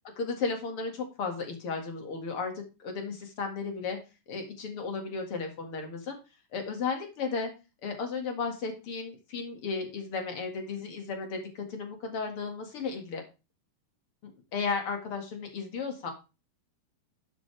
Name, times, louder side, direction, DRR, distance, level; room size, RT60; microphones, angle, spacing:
voice 1, 0.2-4.0 4.3-6.2 6.5-7.5 7.8-13.2 14.2-16.1, left 4 dB, 45° left, 4 dB, 2.3 m, -34 dB
12.0 x 8.3 x 3.3 m, 0.30 s
omnidirectional pair, 4.4 m